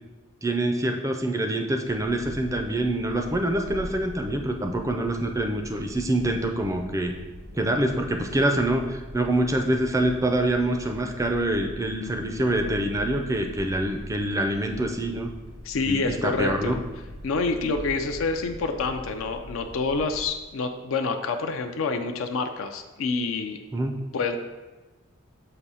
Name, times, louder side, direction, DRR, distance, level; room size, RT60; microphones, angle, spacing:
voice 1, 0.4-7.1 7.5-15.3 15.9-16.8 23.7-24.0, right 1 dB, 15° right, 4 dB, 0.4 m, -25 dB
sound 1, 1.9-20.3, left 1 dB, 80° right, 1.1 m, -42 dB
voice 2, 15.6-16.7 17.2-23.6 24.1-24.4, left 4 dB, 70° left, 6 dB, 0.4 m, -27 dB
6.7 x 2.7 x 5.5 m, 1.2 s
head